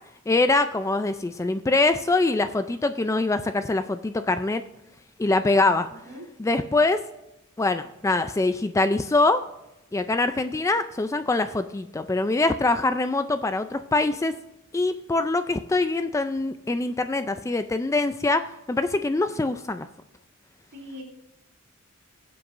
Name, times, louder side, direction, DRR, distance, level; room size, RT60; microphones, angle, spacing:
voice 1, 0.3-4.6 5.2-5.9 6.4-7.0 7.6-9.4 9.9-14.3 14.7-19.9, left 2 dB, 15° left, 10 dB, 0.3 m, -24 dB
voice 2, 5.9-6.3 20.7-21.0, left 1 dB, 50° right, 1 dB, 3.1 m, -41 dB
18.0 x 7.7 x 2.6 m, 0.92 s
head